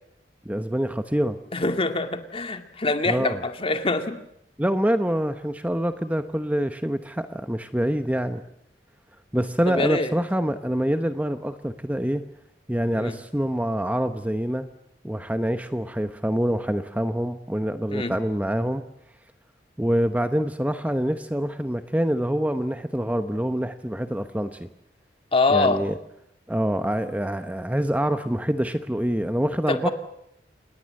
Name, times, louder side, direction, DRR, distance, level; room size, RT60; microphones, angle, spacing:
voice 1, 0.4-1.4 3.0-3.4 4.6-8.4 9.3-12.2 12.7-14.7 15.0-18.8 19.8-24.7 25.5-26.0 26.5-29.9, equal, 10° right, 9 dB, 1.0 m, -25 dB
voice 2, 1.5-4.2 9.7-10.1 12.9-13.1 17.9-18.1 25.3-25.8 29.7-29.9, left 3 dB, 35° left, 7 dB, 2.3 m, -24 dB
28.0 x 20.5 x 7.8 m, 0.76 s
head